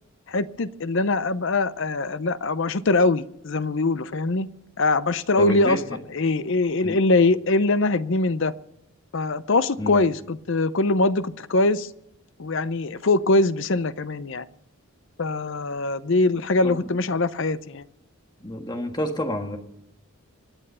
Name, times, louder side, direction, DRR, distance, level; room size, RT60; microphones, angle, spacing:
voice 1, 0.3-4.5 4.8-5.8 6.1-8.5 9.1-11.9 12.4-14.5 15.2-17.8, left 2 dB, 55° left, 0.6 m, -22 dB
voice 2, 5.4-6.0 6.8-7.0 9.8-10.0 16.6-16.9 18.4-19.6, left 1 dB, 20° left, 1.5 m, -29 dB
25.0 x 9.0 x 5.5 m
head